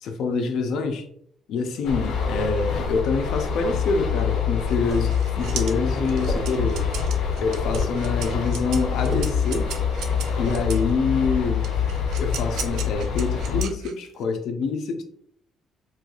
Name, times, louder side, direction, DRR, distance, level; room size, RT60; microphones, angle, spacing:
voice 1, 0.0-1.1 1.5-6.9 7.4-9.7 10.4-11.7 12.2-15.0, left 4 dB, 70° left, 0.5 m, -26 dB
sound 1, 1.8-13.6, left 6 dB, 90° left, 0.9 m, -26 dB
sound 2, 4.7-10.9 11.6-14.2, right 7 dB, 80° right, 0.4 m, -37 dB
sound 3, 4.8-5.2 6.3-6.6 7.6-8.0 9.1-9.4, left 1 dB, 30° right, 0.8 m, -29 dB
4.3 x 2.3 x 2.4 m
cardioid pair, 130°, 0 cm